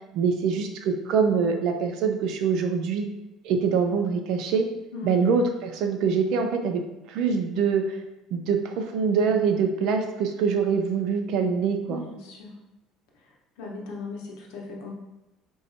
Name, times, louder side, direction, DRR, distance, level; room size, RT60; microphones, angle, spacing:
voice 1, 0.1-3.1 3.4-4.7 5.0-6.8 7.1-7.9 8.3-12.0, right 5 dB, 60° right, 5 dB, 0.5 m, -24 dB
voice 2, 4.9-5.2 11.9-12.6 13.2-14.9, left 2 dB, 85° left, -1 dB, 1.0 m, -38 dB
4.6 x 2.7 x 2.8 m, 1.0 s
cardioid pair, 145°, 0 cm